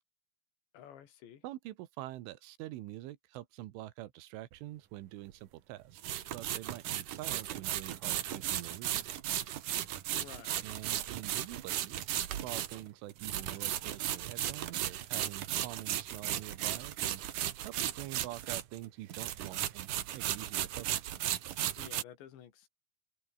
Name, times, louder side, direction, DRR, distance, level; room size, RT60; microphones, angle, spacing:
voice 1, 0.7-1.4 10.1-10.7 21.8-22.7, left 10 dB, 70° left, 4.6 m, -52 dB
voice 2, 1.4-6.0 6.3-9.1 10.6-17.2 17.7-21.2, right 15 dB, 80° right, 3.7 m, -46 dB
peel carrots, 4.5-4.6 6.0-18.8 19.1-22.0, right 12 dB, 65° right, 2.2 m, -36 dB
open air
omnidirectional pair, 5.5 m